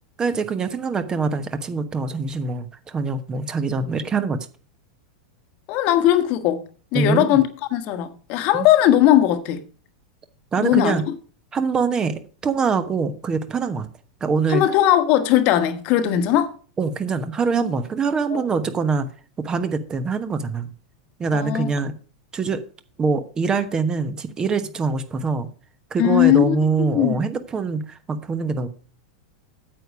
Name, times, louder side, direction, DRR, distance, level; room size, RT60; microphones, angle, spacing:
voice 1, 0.2-4.4 6.9-7.4 8.5-8.7 10.5-11.0 11.5-13.9 14.2-14.6 16.8-19.1 19.4-20.7 21.2-21.9 22.3-22.6 23.0-25.5 25.9-28.7, right 4 dB, 20° right, 1.1 m, -24 dB
voice 2, 5.7-6.6 6.9-9.6 10.6-11.0 14.5-16.5 18.3-18.4 21.3-21.7 26.0-27.2, left 12 dB, 45° left, 1.3 m, -19 dB
9.2 x 8.2 x 4.9 m
figure-of-eight pair, 90°, 3 cm